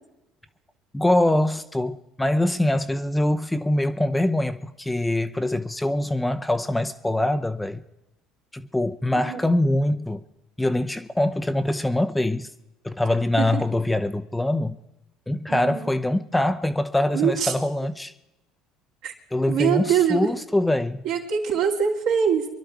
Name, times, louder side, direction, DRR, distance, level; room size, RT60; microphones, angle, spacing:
voice 1, 0.9-7.8 8.5-10.2 10.6-12.5 12.8-14.8 15.3-18.1 19.3-21.0, left 1 dB, 10° left, 0.9 m, -23 dB
voice 2, 15.5-15.9 17.1-17.5 19.0-19.1 19.5-20.3 21.0-22.5, right 7 dB, 65° right, 2.9 m, -23 dB
25.0 x 11.5 x 4.8 m
hypercardioid pair, 65°, 0 cm